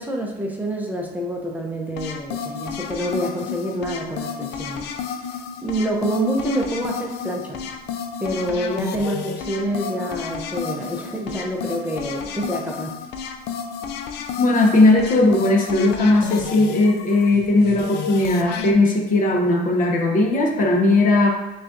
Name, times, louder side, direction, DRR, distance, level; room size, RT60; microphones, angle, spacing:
voice 1, 0.0-5.0 5.6-7.6 8.2-13.0, right 1 dB, 10° right, -1 dB, 0.6 m, -27 dB
sound 1, 2.0-18.7, left 6 dB, 75° left, 0.4 m, -31 dB
voice 2, 14.4-21.3, left 2 dB, 50° left, 1 dB, 0.8 m, -17 dB
6.1 x 2.4 x 2.5 m, 1.1 s
cardioid pair, 110°, 17 cm